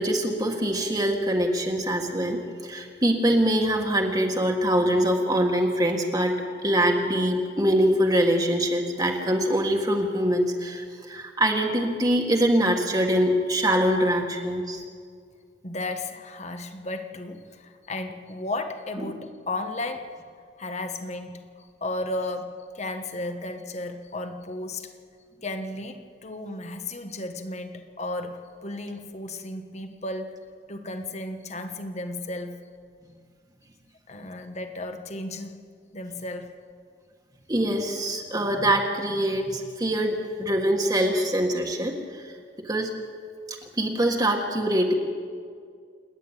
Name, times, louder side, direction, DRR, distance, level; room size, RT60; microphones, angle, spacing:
voice 1, 0.0-6.3 6.6-14.8 37.5-42.3 42.6-42.9 43.5-44.9, equal, 20° right, 1 dB, 1.8 m, -24 dB
voice 2, 15.6-20.2 20.6-24.9 25.4-30.4 30.7-32.6 34.1-35.6 35.9-36.5, left 2 dB, 40° left, 7 dB, 1.5 m, -34 dB
28.5 x 10.5 x 9.1 m, 2.1 s
head